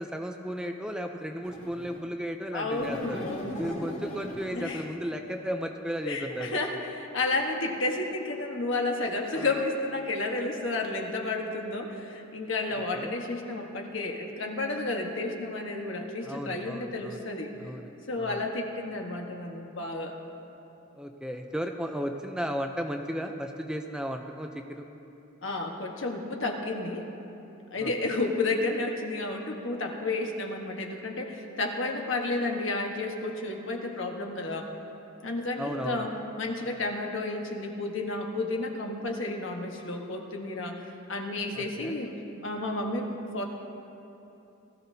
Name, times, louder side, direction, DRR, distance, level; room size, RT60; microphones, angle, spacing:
voice 1, 0.0-3.2 3.6-6.8 9.3-9.5 12.9-13.1 16.2-17.2 17.6-17.9 18.2-18.4 20.9-24.8 27.8-28.2 35.6-36.1 41.5-41.9, equal, 5° right, 4 dB, 0.5 m, -35 dB
sound 1, 1.4-2.1 2.7-5.0, equal, 35° left, 2.5 m, -39 dB
voice 2, 2.5-3.7 4.5-4.8 6.1-17.5 18.1-20.2 25.4-27.1 27.7-34.7 35.2-40.8 41.1-42.1 42.4-43.4, left 2 dB, 65° left, 2 dB, 1.3 m, -31 dB
19.5 x 14.0 x 2.8 m, 2.9 s
head